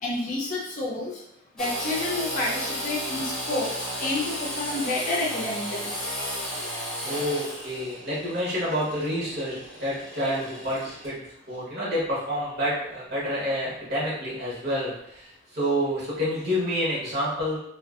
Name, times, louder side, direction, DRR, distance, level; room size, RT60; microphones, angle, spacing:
voice 1, 0.0-1.2 1.6-3.7 4.0-5.9, left 2 dB, 40° left, -3 dB, 0.5 m, -29 dB
Engine / Sawing, 1.6-11.1, equal, 5° left, 0.8 m, -34 dB
voice 2, 7.0-17.6, equal, 55° right, -7 dB, 1.1 m, -28 dB
2.5 x 2.3 x 2.4 m, 0.75 s
head